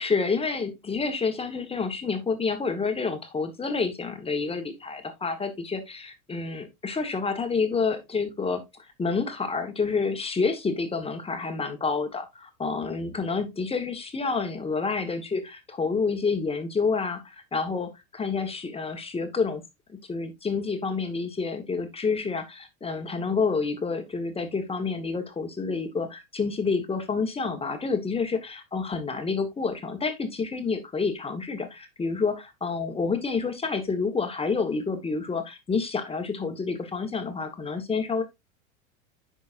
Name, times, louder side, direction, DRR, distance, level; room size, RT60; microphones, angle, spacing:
voice 1, 0.0-19.6 19.9-38.2, left 4 dB, 15° left, 1.4 m, -28 dB
9.7 x 5.3 x 2.5 m
hypercardioid pair, 110°, 43 cm